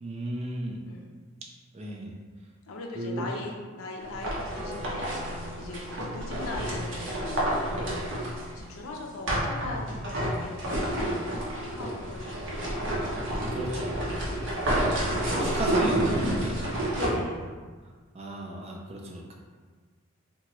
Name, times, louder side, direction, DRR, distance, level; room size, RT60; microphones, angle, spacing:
voice 1, 0.0-0.8 1.7-2.1 3.0-3.3 13.5-14.1 14.8-15.0 15.3-16.6 18.1-19.3, right 1 dB, 30° right, -1 dB, 0.3 m, -34 dB
voice 2, 2.7-5.1 5.6-8.1 8.5-10.0 10.4-11.5 11.7-12.9 14.3-14.7 16.9-17.6, left 2 dB, 75° left, 1 dB, 0.5 m, -39 dB
sound 1, 4.0-8.6 9.3-17.1, right 1 dB, 60° right, 0.7 m, -29 dB
Wind instrument woodwind instrument, 4.5-10.6, left 2 dB, 45° left, 1.4 m, -49 dB
2.9 x 2.2 x 2.9 m, 1.5 s
head